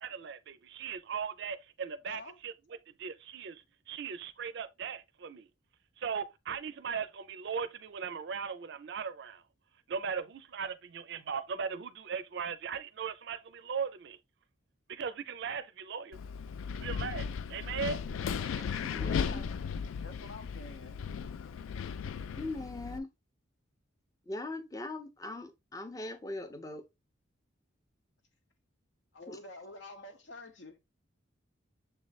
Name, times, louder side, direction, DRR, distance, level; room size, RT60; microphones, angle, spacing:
voice 1, 0.0-2.5 3.0-5.5 6.0-9.4 9.9-14.2 14.9-16.2 16.8-18.6, right 6 dB, 60° right, 0.4 m, -38 dB
voice 2, 2.1-2.4 18.4-18.7 19.0-19.5 20.0-21.0 29.1-30.8, left 2 dB, 65° left, 0.8 m, -48 dB
Wind, 16.1-23.0, left 6 dB, 90° left, 0.3 m, -36 dB
voice 3, 18.8-19.4 22.3-23.1 24.3-26.8 29.3-29.4, left 2 dB, 20° left, 0.5 m, -40 dB
6.7 x 3.1 x 2.3 m
head